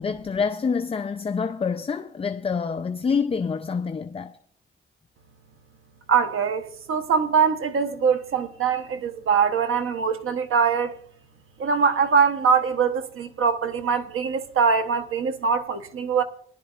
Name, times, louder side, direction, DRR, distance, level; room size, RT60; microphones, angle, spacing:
voice 1, 0.0-4.4, left 5 dB, 25° left, 0.4 m, -27 dB
voice 2, 6.1-11.0 11.6-16.2, right 6 dB, 85° right, 0.9 m, -23 dB
20.5 x 11.0 x 2.4 m
cardioid pair, 100°, 21 cm